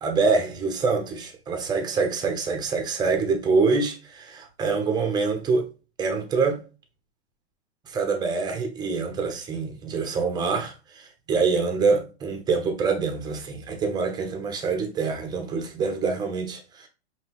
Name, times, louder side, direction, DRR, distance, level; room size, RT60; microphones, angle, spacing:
voice 1, 0.0-5.6 6.0-6.6 7.9-16.9, right 4 dB, 10° right, 0.6 m, -25 dB
5.2 x 2.8 x 2.9 m
hypercardioid pair, 140°, 33 cm